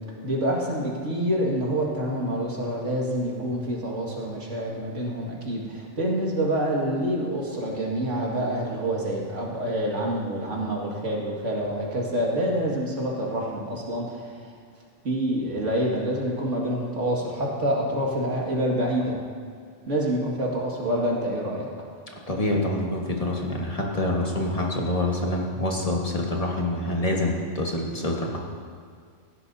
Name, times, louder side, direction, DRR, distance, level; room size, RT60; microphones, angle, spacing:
voice 1, 0.2-14.5 15.0-19.2 19.9-21.7, right 1 dB, 90° right, -2 dB, 2.3 m, -27 dB
voice 2, 22.3-28.4, left 1 dB, 30° left, -1 dB, 1.5 m, -26 dB
16.5 x 11.5 x 2.7 m, 2.1 s
omnidirectional pair, 1.2 m